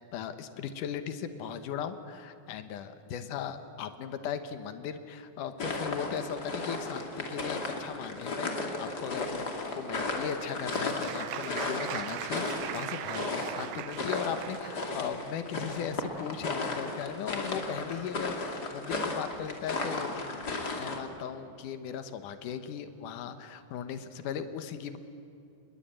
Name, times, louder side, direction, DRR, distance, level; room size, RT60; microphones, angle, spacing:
voice 1, 0.1-20.5 20.8-25.0, left 8 dB, 65° left, 9 dB, 2.1 m, -38 dB
sound 1, 5.6-21.0, left 2 dB, 30° left, 2.2 m, -35 dB
Applause, 10.0-14.8, right 12 dB, 85° right, 3.0 m, -40 dB
28.5 x 21.5 x 8.9 m, 2.5 s
omnidirectional pair, 4.9 m